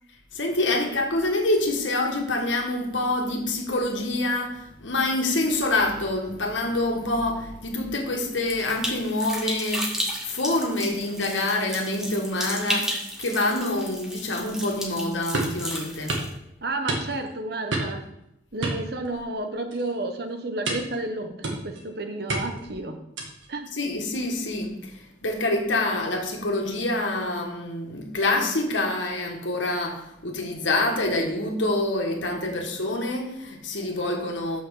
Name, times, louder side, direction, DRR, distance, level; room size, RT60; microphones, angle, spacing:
voice 1, 0.3-9.9 10.2-12.9 13.2-16.1 23.7-34.6, left 2 dB, 75° left, 1.7 m, -26 dB
sound 1, 8.5-16.3, equal, 5° right, 1.3 m, -33 dB
sound 2, 15.3-15.6 16.1-16.3 16.9-17.3 17.7-18.1 18.6-19.4 19.7-20.0 20.7-21.0 21.4-21.8 22.3-22.7 23.2-23.5, right 2 dB, 80° right, 1.8 m, -29 dB
voice 2, 16.6-18.0 18.5-23.0 23.5-23.7, right 2 dB, 55° right, 1.1 m, -31 dB
6.2 x 6.1 x 7.1 m
head